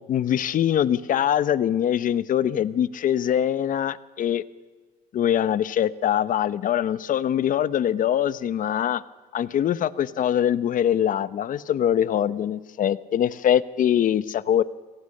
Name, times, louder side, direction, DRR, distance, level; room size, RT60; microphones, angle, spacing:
voice 1, 0.1-4.4 5.1-9.0 9.3-14.6, left 10 dB, 55° left, 16 dB, 0.9 m, -23 dB
28.5 x 18.5 x 6.6 m, 1.3 s
cardioid pair, 110°, 17 cm